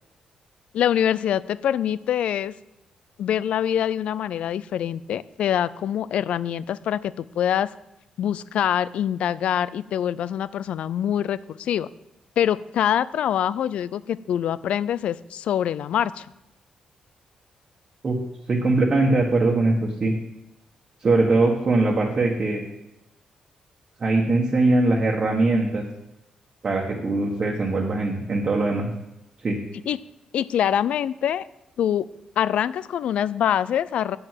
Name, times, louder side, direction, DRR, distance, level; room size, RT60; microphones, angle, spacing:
voice 1, 0.7-2.5 3.2-7.7 8.2-11.9 12.4-16.3 29.9-30.0 30.3-31.5 31.8-32.1 32.4-34.2, left 10 dB, 70° left, 18 dB, 0.4 m, -24 dB
voice 2, 18.5-20.1 21.0-22.6 24.0-25.8 26.6-28.9 29.4-29.6, right 2 dB, 30° right, -1 dB, 1.4 m, -21 dB
8.8 x 7.8 x 7.5 m, 0.90 s
wide cardioid pair, 165°, 2 cm